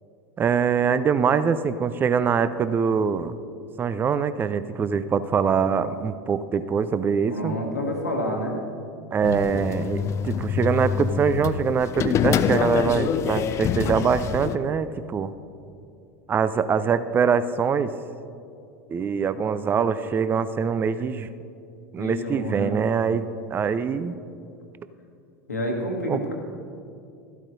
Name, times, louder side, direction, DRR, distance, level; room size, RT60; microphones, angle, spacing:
voice 1, 0.4-3.3 3.8-7.6 9.1-15.3 16.3-17.9 18.9-21.3 21.9-24.2 26.1-26.2, right 6 dB, 25° right, 14 dB, 0.4 m, -23 dB
voice 2, 7.3-8.6 22.0-22.7 25.5-26.3, equal, 85° left, 0 dB, 1.6 m, -28 dB
sound 1, 9.2-14.6, left 8 dB, 35° left, 0.4 m, -26 dB
13.0 x 12.5 x 2.7 m, 2.5 s
figure-of-eight pair, 80°, 8 cm